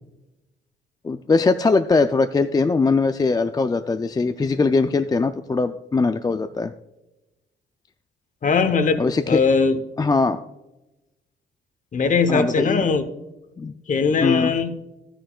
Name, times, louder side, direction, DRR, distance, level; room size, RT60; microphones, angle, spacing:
voice 1, 1.0-6.7 9.0-9.4 10.0-10.4 12.3-12.9 13.6-13.7 14.2-14.5, left 4 dB, 20° left, 9 dB, 0.4 m, -21 dB
voice 2, 8.4-9.0 9.3-9.8 11.9-13.1 13.9-14.7, left 5 dB, 40° left, 11 dB, 1.0 m, -20 dB
12.0 x 10.0 x 2.4 m, 1.0 s
cardioid pair, 90°, 20 cm